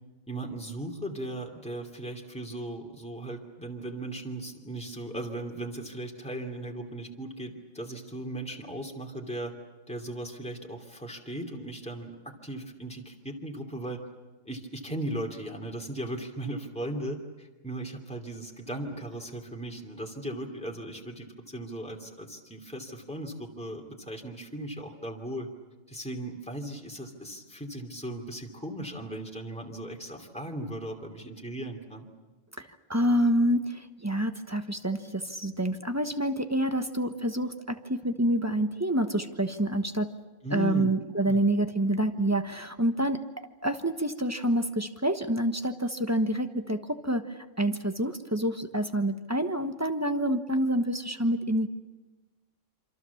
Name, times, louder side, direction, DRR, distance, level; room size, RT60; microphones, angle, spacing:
voice 1, 0.3-9.6 9.9-14.1 14.4-25.5 25.9-32.1 40.4-40.9 41.2-41.4, right 1 dB, 5° left, 1 dB, 2.9 m, -37 dB
voice 2, 32.6-40.1 40.5-43.2 43.6-51.7, right 1 dB, 15° right, 7 dB, 1.1 m, -27 dB
27.5 x 26.0 x 7.2 m, 1.2 s
omnidirectional pair, 1.3 m